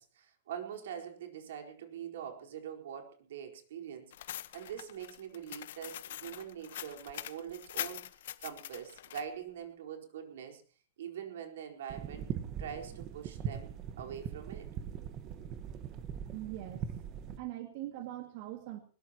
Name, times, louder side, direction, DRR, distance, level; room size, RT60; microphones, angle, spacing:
voice 1, 0.0-4.1 4.5-8.1 8.4-10.6 11.0-12.3 12.6-14.7, right 8 dB, 80° right, 3 dB, 4.3 m, -44 dB
sound 1, 4.1-9.2, left 12 dB, 70° left, 1.1 m, -43 dB
sound 2, 11.9-17.4, right 8 dB, 30° right, 1.3 m, -41 dB
voice 2, 16.3-16.9 17.4-18.8, right 14 dB, 45° right, 6 dB, 2.1 m, -41 dB
21.0 x 20.5 x 3.0 m, 0.38 s
supercardioid pair, 170°, 0 cm